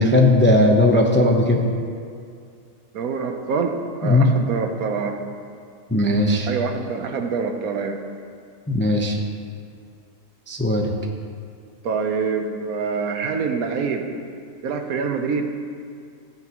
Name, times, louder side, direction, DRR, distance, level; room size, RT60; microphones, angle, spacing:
voice 1, 0.0-1.6 4.0-4.3 5.9-6.5 8.7-9.2 10.5-10.9, left 1 dB, 10° left, 1 dB, 0.5 m, -17 dB
voice 2, 2.9-5.2 6.5-8.0 11.8-14.1 14.6-15.5, right 5 dB, 80° right, 5 dB, 1.3 m, -25 dB
14.5 x 9.6 x 3.0 m, 2.3 s
omnidirectional pair, 1.5 m